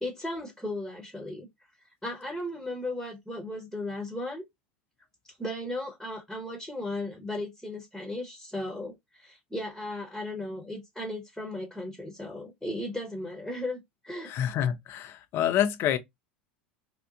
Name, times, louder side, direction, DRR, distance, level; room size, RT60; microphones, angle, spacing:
voice 1, 0.0-1.5 2.0-4.4 5.3-14.3, left 1 dB, 5° left, 1.0 m, -36 dB
voice 2, 14.2-16.0, left 10 dB, 45° left, 0.5 m, -27 dB
2.9 x 2.1 x 2.4 m
figure-of-eight pair, 80°, 6 cm